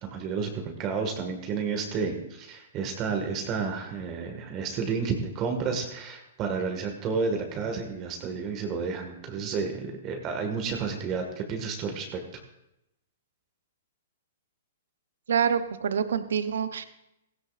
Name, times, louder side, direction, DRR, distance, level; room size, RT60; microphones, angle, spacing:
voice 1, 0.0-12.2, right 5 dB, 30° right, 4 dB, 1.8 m, -31 dB
voice 2, 15.3-16.8, right 7 dB, 75° right, 12 dB, 0.8 m, -26 dB
16.5 x 16.0 x 2.5 m, 0.85 s
hypercardioid pair, 135°, 0 cm